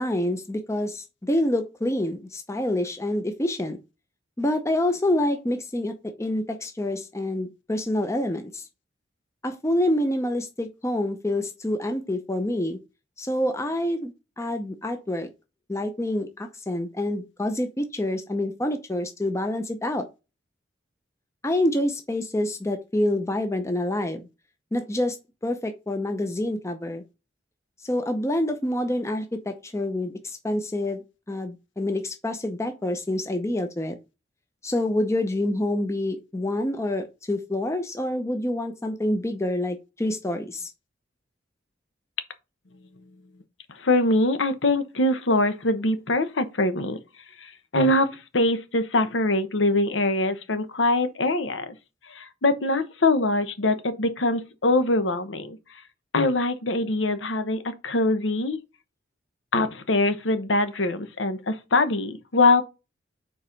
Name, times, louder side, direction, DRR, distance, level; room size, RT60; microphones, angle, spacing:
voice 1, 0.0-3.8 4.4-8.7 9.4-12.8 13.2-15.3 15.7-20.1 21.4-24.3 24.7-25.2 25.4-27.0 27.8-31.0 31.3-34.0 34.6-40.7, left 1 dB, 15° left, 0.6 m, -27 dB
voice 2, 43.7-47.0 47.4-51.7 52.0-55.6 56.1-58.6 59.5-62.6, left 2 dB, 80° left, 1.0 m, -23 dB
4.7 x 4.3 x 5.2 m
head